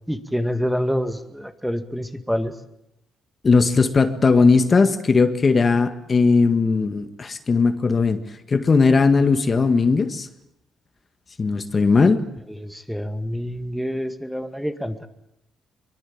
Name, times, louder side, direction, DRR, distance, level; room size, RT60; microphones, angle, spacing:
voice 1, 0.1-2.5 12.6-15.1, equal, ahead, 9 dB, 1.9 m, -27 dB
voice 2, 3.4-8.2 8.5-10.3 11.4-12.2, left 4 dB, 35° left, 9 dB, 1.8 m, -18 dB
23.5 x 23.0 x 8.8 m, 0.81 s
cardioid pair, 90°, 0 cm